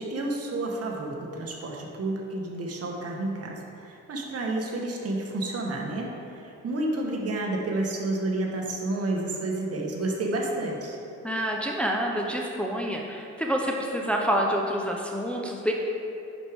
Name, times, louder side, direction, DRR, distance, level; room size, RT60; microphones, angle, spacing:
voice 1, 0.0-11.0, right 2 dB, 50° right, 0 dB, 1.3 m, -30 dB
voice 2, 11.2-15.7, equal, 5° left, -1 dB, 0.7 m, -27 dB
10.5 x 4.9 x 3.6 m, 2.8 s
cardioid pair, 90°, 30 cm